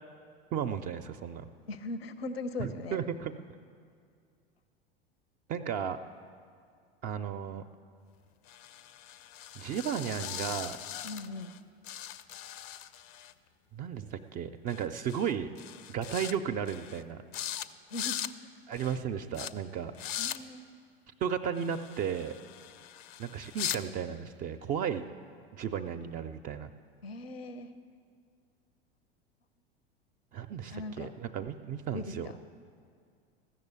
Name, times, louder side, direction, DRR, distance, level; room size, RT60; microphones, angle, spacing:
voice 1, 0.5-1.5 2.6-3.3 5.5-6.0 7.0-7.6 9.6-10.8 13.7-15.5 15.9-17.2 18.7-19.9 21.2-22.3 23.2-25.1 25.5-26.7 30.3-32.3, right 8 dB, 30° right, 8 dB, 0.4 m, -34 dB
voice 2, 1.7-3.0 11.0-11.5 17.9-18.3 20.2-20.6 27.0-27.7 30.7-31.1 31.9-32.6, left 2 dB, 75° left, 12 dB, 0.7 m, -39 dB
sound 1, 8.5-11.6 11.8-13.3 14.7-14.8 15.1-15.3 15.6-16.3 16.7-17.0 17.3-17.7 17.9-18.3 18.7-19.0 19.3-19.5 19.9-20.4 21.6-23.8, left 10 dB, 40° left, 0.5 m, -40 dB
15.0 x 6.6 x 8.2 m, 2.2 s
figure-of-eight pair, 80°, 31 cm